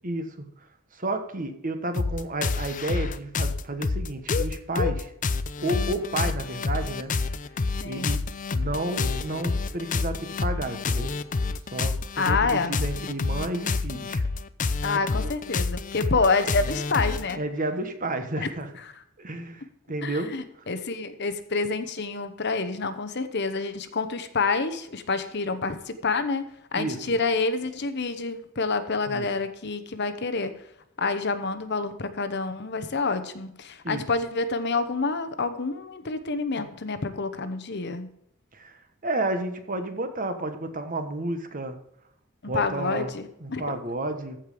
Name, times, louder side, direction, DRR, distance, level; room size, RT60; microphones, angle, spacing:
voice 1, 0.0-0.5 0.9-5.1 5.6-7.1 7.8-8.2 8.5-11.1 11.7-14.2 15.1-15.3 17.4-18.7 19.2-20.3 26.8-27.0 29.1-29.3 33.8-34.1 38.5-38.8 39.0-41.8 42.4-43.1 43.4-44.4, right 2 dB, 40° right, 7 dB, 1.3 m, -31 dB
sound 1, 1.9-17.4, left 3 dB, 40° left, 0.6 m, -28 dB
voice 2, 7.8-8.1 12.2-12.8 14.8-17.4 18.4-18.5 20.0-30.5 31.0-38.1 42.4-43.8, left 4 dB, 55° left, 10 dB, 1.0 m, -28 dB
14.5 x 5.3 x 5.0 m, 0.74 s
head